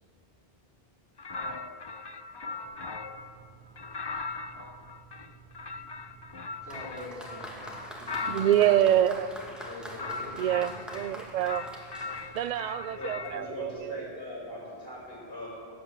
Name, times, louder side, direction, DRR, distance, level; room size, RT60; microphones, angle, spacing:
sound 1, 1.2-3.3 3.8-8.9 9.5-11.1 11.4-13.4, left 4 dB, 35° left, 0.4 m, -39 dB
sound 2, 2.6-13.7, right 6 dB, 20° right, 2.1 m, -55 dB
voice 1, 6.6-8.6 9.6-10.7, left 1 dB, 80° right, -5 dB, 4.2 m, -45 dB
Applause, 6.7-13.1 14.0-14.1, equal, ahead, 2.1 m, -45 dB
voice 2, 8.3-9.4 10.4-11.7 12.3-14.1, right 11 dB, 55° right, 15 dB, 0.5 m, -26 dB
voice 3, 12.9-15.5, left 1 dB, 70° left, -5 dB, 5.5 m, -40 dB
16.5 x 9.4 x 8.0 m, 2.4 s
omnidirectional pair, 1.0 m